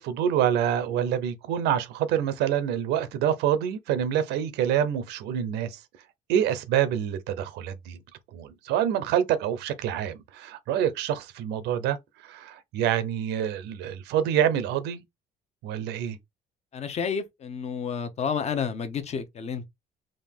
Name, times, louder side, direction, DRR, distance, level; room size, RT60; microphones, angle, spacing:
voice 1, 0.0-5.8 6.3-8.0 8.3-12.0 12.2-15.0 15.6-16.2, right 9 dB, 90° right, 0.7 m, -26 dB
voice 2, 16.7-19.7, left 6 dB, 40° left, 0.8 m, -30 dB
3.8 x 2.5 x 3.5 m
cardioid pair, 110°, 17 cm